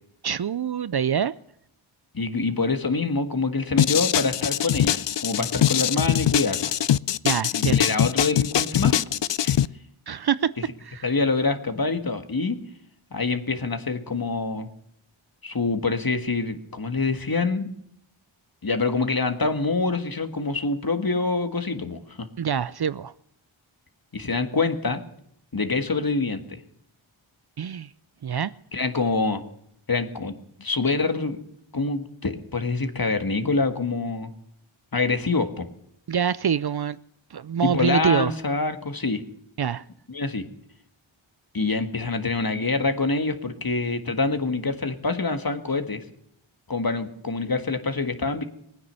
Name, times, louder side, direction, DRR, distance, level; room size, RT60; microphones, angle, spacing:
voice 1, 0.2-1.3 7.2-7.9 10.1-10.5 10.8-11.0 22.4-23.1 27.6-27.9 28.2-28.5 36.1-37.0 37.3-38.3 39.6-39.8, right 8 dB, 50° right, 0.5 m, -25 dB
voice 2, 2.1-6.7 7.5-8.9 9.4-9.6 11.0-12.6 13.1-14.7 15.4-17.7 18.6-22.3 24.1-25.0 25.5-26.6 28.7-29.4 29.9-30.3 30.6-31.4 31.7-34.3 34.9-35.7 37.6-39.2 40.1-40.4 41.5-46.0 46.7-48.4, left 3 dB, 45° left, 1.7 m, -25 dB
sound 1, 3.8-9.7, left 10 dB, 60° left, 0.5 m, -22 dB
20.5 x 9.7 x 6.9 m
wide cardioid pair, 65°, 49 cm